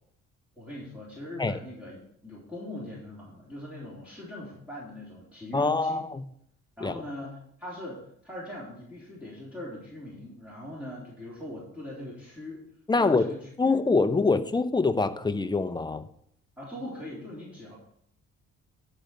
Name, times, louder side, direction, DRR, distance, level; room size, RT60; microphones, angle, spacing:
voice 1, 0.6-6.0 6.8-12.6 12.9-13.7 16.6-17.7, left 1 dB, 5° right, -7 dB, 3.7 m, -41 dB
voice 2, 5.5-6.2 6.8-6.9 12.9-13.3 13.6-16.1, left 3 dB, 15° left, 10 dB, 0.7 m, -25 dB
11.0 x 5.1 x 6.5 m, 0.71 s
cardioid pair, 90°, 30 cm